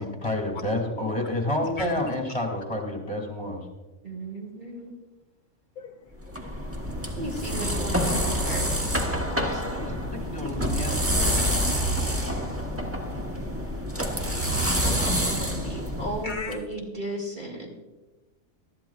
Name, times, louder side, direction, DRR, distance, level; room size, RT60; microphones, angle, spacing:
voice 1, 0.0-3.7 9.5-11.3, left 1 dB, 25° left, 0 dB, 2.5 m, -30 dB
voice 2, 4.0-4.9 7.2-9.6 14.8-17.7, right 1 dB, 40° right, -2 dB, 2.3 m, -36 dB
voice 3, 5.8-6.9 11.1-12.6 13.5-13.7 16.2-16.7, left 4 dB, 50° left, 6 dB, 0.6 m, -42 dB
sound 1, 6.2-16.5, equal, 10° right, 1.0 m, -27 dB
19.0 x 13.0 x 2.4 m, 1.1 s
omnidirectional pair, 1.3 m